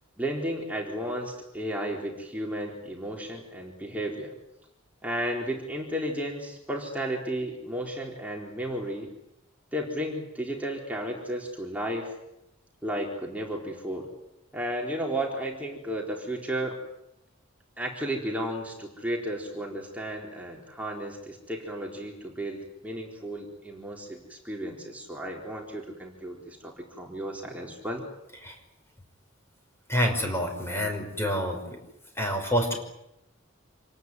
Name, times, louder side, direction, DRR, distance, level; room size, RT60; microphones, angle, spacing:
voice 1, 0.2-4.3 5.0-9.1 9.7-12.1 12.8-14.1 14.5-16.7 17.8-28.0, right 1 dB, 5° right, -1 dB, 4.0 m, -33 dB
voice 2, 29.9-31.8 32.2-32.7, equal, 10° left, 3 dB, 5.5 m, -27 dB
27.0 x 19.0 x 9.6 m, 0.85 s
head